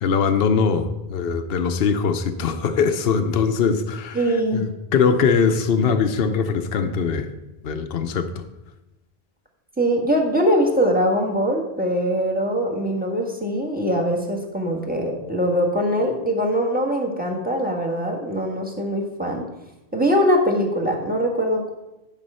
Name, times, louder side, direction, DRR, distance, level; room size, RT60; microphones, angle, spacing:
voice 1, 0.0-7.3 7.6-8.3, left 5 dB, 65° left, 7 dB, 0.9 m, -21 dB
voice 2, 4.1-4.7 9.8-19.4 19.9-21.7, equal, 10° right, 1 dB, 1.5 m, -22 dB
10.5 x 5.0 x 5.5 m, 0.96 s
omnidirectional pair, 1.1 m